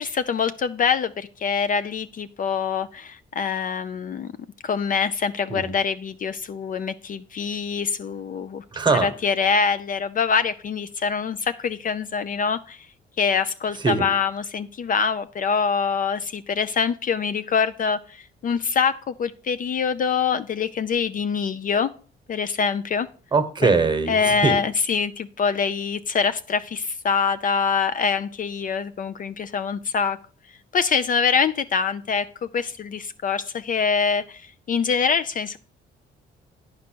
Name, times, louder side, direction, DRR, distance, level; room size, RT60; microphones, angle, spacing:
voice 1, 0.0-4.3 4.6-8.6 9.0-12.9 13.2-21.9 22.3-23.1 23.6-23.7 24.1-30.2 30.7-35.6, left 6 dB, 45° left, 13 dB, 0.4 m, -24 dB
voice 2, 8.7-9.1 13.8-14.1 23.3-24.6, right 4 dB, 20° right, 8 dB, 1.1 m, -21 dB
9.2 x 5.2 x 4.5 m, 0.42 s
cardioid pair, 90°, 20 cm